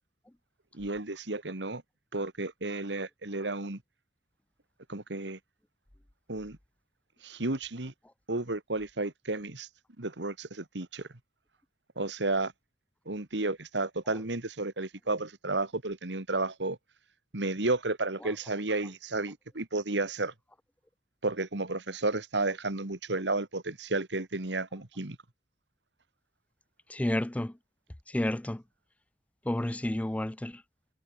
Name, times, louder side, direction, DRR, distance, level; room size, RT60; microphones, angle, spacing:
voice 1, 0.7-1.8 2.1-3.8 4.9-5.4 6.3-6.6 7.2-7.9 8.3-9.7 10.0-11.1 12.0-12.5 13.1-16.8 17.3-20.3 21.2-25.2, right 2 dB, 85° right, 2.2 m, -32 dB
voice 2, 26.9-27.5 28.1-28.6 29.5-30.6, left 1 dB, 10° left, 0.4 m, -31 dB
head